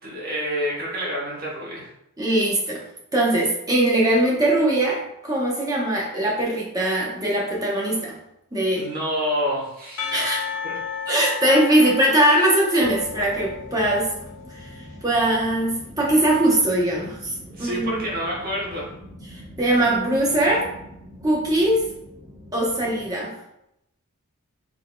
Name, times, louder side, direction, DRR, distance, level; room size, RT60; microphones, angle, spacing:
voice 1, 0.0-1.9 8.7-10.8 11.7-11.9 17.5-18.9, equal, 40° right, -4 dB, 1.1 m, -28 dB
voice 2, 2.2-2.8 3.1-8.2 8.5-8.9 10.1-10.5 11.1-14.1 14.5-14.7 15.0-18.0 19.6-20.7 21.2-21.8 22.5-23.3, right 1 dB, 15° right, -3 dB, 0.8 m, -21 dB
Percussion / Church bell, 10.0-14.5, left 7 dB, 90° left, 0.7 m, -33 dB
sound 1, 12.8-23.1, equal, 65° right, 1.4 m, -43 dB
3.7 x 3.6 x 2.2 m, 0.81 s
head